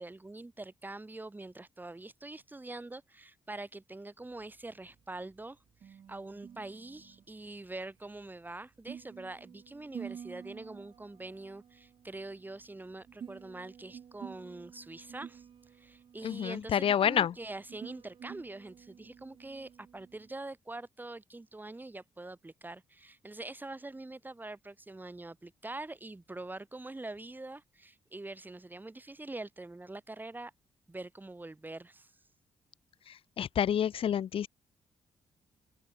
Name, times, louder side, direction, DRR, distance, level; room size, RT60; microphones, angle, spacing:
voice 1, 0.0-15.5 15.8-30.5 30.9-32.1, right 2 dB, 20° right, 1.9 m, -44 dB
sound 1, 4.2-20.3, right 8 dB, 60° right, 1.4 m, -51 dB
voice 2, 16.2-17.3 33.1-34.5, left 9 dB, 65° left, 0.9 m, -29 dB
open air
supercardioid pair, 60°, 10 cm